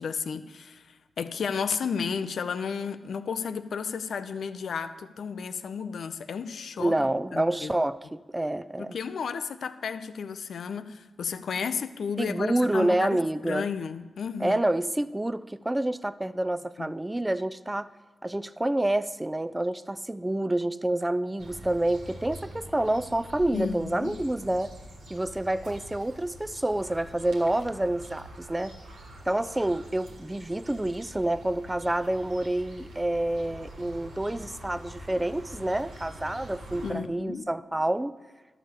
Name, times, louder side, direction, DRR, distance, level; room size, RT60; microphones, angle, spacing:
voice 1, 0.0-7.0 7.3-7.7 8.8-14.6 16.8-16.9 23.5-24.2 36.8-37.5, left 6 dB, 75° left, 11 dB, 0.5 m, -33 dB
voice 2, 6.8-9.0 12.2-13.7 14.4-17.9 18.2-24.7 25.1-28.8 29.3-38.1, right 1 dB, 20° right, 15 dB, 0.5 m, -28 dB
sound 1, 21.4-36.9, right 1 dB, 90° right, 1.8 m, -45 dB
12.0 x 4.9 x 8.1 m, 1.2 s
supercardioid pair, 40°, 0 cm